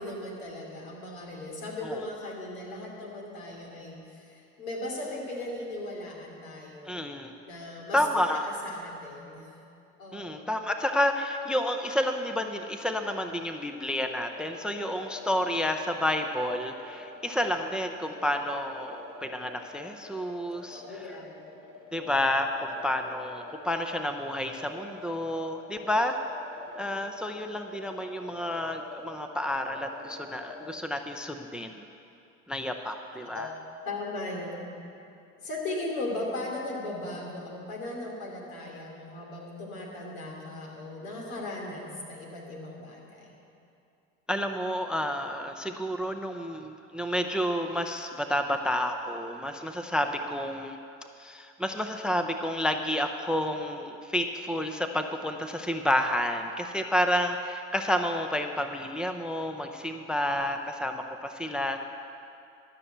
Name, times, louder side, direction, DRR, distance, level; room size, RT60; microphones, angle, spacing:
voice 1, 0.0-7.0 7.4-8.0 8.4-9.5 10.0-10.4 20.7-21.3 33.2-33.5 33.8-34.9 35.4-43.4, left 2 dB, 80° left, -2 dB, 2.8 m, -38 dB
voice 2, 6.9-7.3 7.9-8.4 10.1-21.0 21.9-26.2 26.7-31.8 32.5-33.5 44.3-50.8 51.2-61.8, left 1 dB, ahead, 6 dB, 0.5 m, -30 dB
sound 1, 14.2-30.8, left 2 dB, 45° left, 2.7 m, -47 dB
12.5 x 6.1 x 7.9 m, 2.6 s
hypercardioid pair, 80°, 41 cm